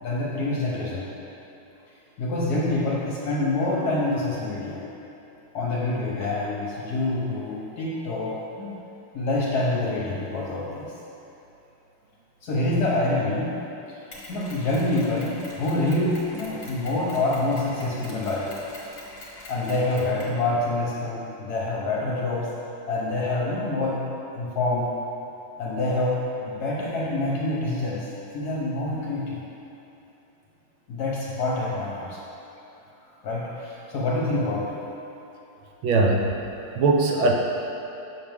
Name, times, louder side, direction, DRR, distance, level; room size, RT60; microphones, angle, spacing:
voice 1, 0.0-1.1 2.2-4.8 5.5-8.8 9.1-10.9 12.4-13.6 14.3-18.5 19.5-22.5 22.9-24.0 24.3-24.9 25.6-29.4 30.9-32.2 33.2-34.8, left 2 dB, 55° left, -4 dB, 1.2 m, -26 dB
Mechanisms, 14.1-20.4, left 1 dB, 25° left, 1.3 m, -44 dB
voice 2, 35.8-36.4 36.7-37.3, right 3 dB, 75° right, 0 dB, 1.4 m, -20 dB
7.8 x 6.1 x 3.5 m, 2.9 s
omnidirectional pair, 2.3 m